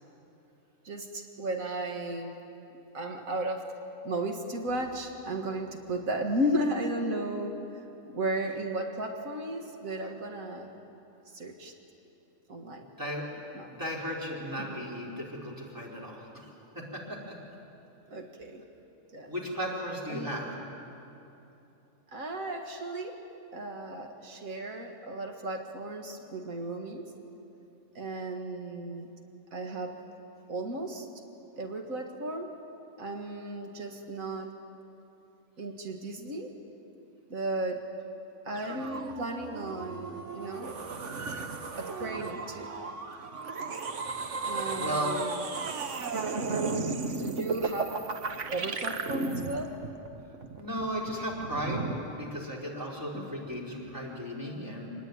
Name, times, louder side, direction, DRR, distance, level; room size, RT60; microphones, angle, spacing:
voice 1, 0.8-2.4 2.9-3.7 4.0-7.6 8.1-10.7 11.3-11.7 12.5-12.9 13.5-13.7 14.6-14.8 18.1-18.6 19.1-19.3 20.1-20.4 22.1-23.2 23.5-27.1 28.0-29.1 29.5-30.0 30.5-31.1 31.5-32.6 33.0-34.5 35.6-36.6 37.3-37.9 38.5-40.8 41.8-42.7 44.4-45.8 47.2-48.0 48.5-49.8 53.1-53.3, right 1 dB, 90° right, 3 dB, 2.1 m, -35 dB
voice 2, 13.7-16.5 16.7-17.3 19.3-20.5 44.8-45.1 50.6-51.9 52.2-54.9, equal, 15° right, -4 dB, 4.3 m, -35 dB
sound 1, 38.5-52.3, right 4 dB, 65° right, 1.5 m, -35 dB
25.5 x 20.0 x 9.5 m, 2.9 s
omnidirectional pair, 1.4 m